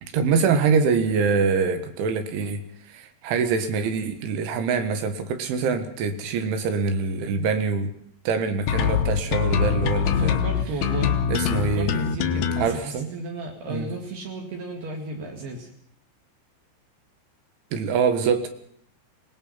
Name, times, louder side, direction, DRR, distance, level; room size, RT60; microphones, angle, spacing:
voice 1, 0.0-7.9 8.3-10.4 11.3-11.9 12.6-13.1 13.7-13.9 17.7-18.5, right 5 dB, 85° right, 8 dB, 4.1 m, -24 dB
sound 1, 8.7-12.7, left 7 dB, 90° left, 1.6 m, -23 dB
voice 2, 10.2-11.2 11.6-15.7, right 2 dB, 65° right, 1 dB, 4.0 m, -34 dB
24.0 x 19.0 x 5.8 m, 0.65 s
omnidirectional pair, 5.3 m